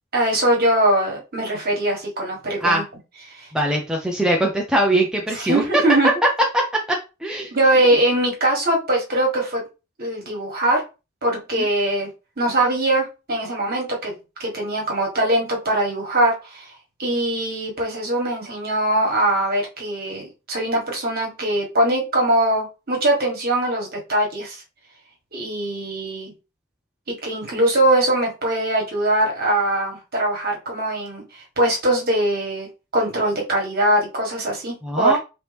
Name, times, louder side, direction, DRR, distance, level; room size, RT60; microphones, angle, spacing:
voice 1, 0.1-2.8 3.3-3.5 5.3-6.1 7.5-9.6 10.0-10.8 11.2-12.1 12.4-16.6 17.0-24.6 25.3-26.3 27.2-32.7 32.9-35.1, right 1 dB, 45° right, 0 dB, 1.6 m, -21 dB
voice 2, 3.5-5.6 6.5-6.6 7.2-7.5 11.6-11.7 34.8-35.2, right 1 dB, 5° right, -1 dB, 0.6 m, -21 dB
4.5 x 3.1 x 3.4 m, 0.29 s
head